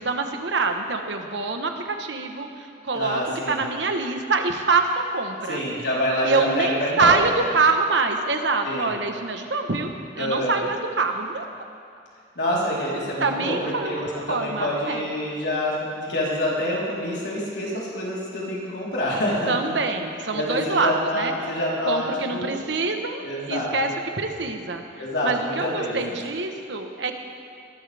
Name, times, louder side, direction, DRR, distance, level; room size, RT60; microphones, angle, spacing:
voice 1, 0.0-5.6 6.2-11.5 13.2-15.1 19.5-21.5 21.8-27.1, right 3 dB, 85° right, 5 dB, 1.2 m, -25 dB
voice 2, 2.9-3.6 5.5-7.2 8.6-8.9 10.2-10.6 12.4-15.8 16.1-19.7 20.3-22.5 23.2-23.9 25.0-26.0, left 1 dB, 75° left, -6 dB, 3.8 m, -27 dB
21.0 x 13.0 x 3.5 m, 2.4 s
head